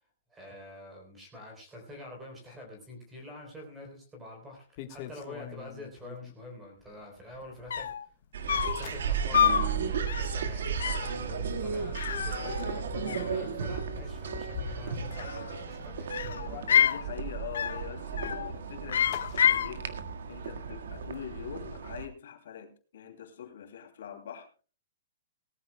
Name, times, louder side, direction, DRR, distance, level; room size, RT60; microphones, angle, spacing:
voice 1, 0.3-7.9 8.5-16.2, left 1 dB, 10° right, 3.7 m, -46 dB
sound 1, 4.8-6.3 6.8-8.1 8.4-9.5 9.9-10.3 10.7-10.8 11.1-21.6, left 9 dB, 30° left, 1.4 m, -47 dB
sound 2, 7.4-7.5 7.7-8.0 8.5-8.9 9.3-9.7 10.1-10.4 10.8-11.1 11.9-12.8 13.1-13.8 15.0-15.6 16.1-17.0 17.5-17.9 18.2-18.5 18.9-19.7, left 8 dB, 85° left, 1.0 m, -28 dB
sound 3, 8.3-22.1, right 6 dB, 75° right, 1.7 m, -35 dB
voice 2, 16.7-24.5, left 9 dB, 60° left, 2.7 m, -43 dB
18.5 x 14.0 x 2.2 m
hypercardioid pair, 180°, 0 cm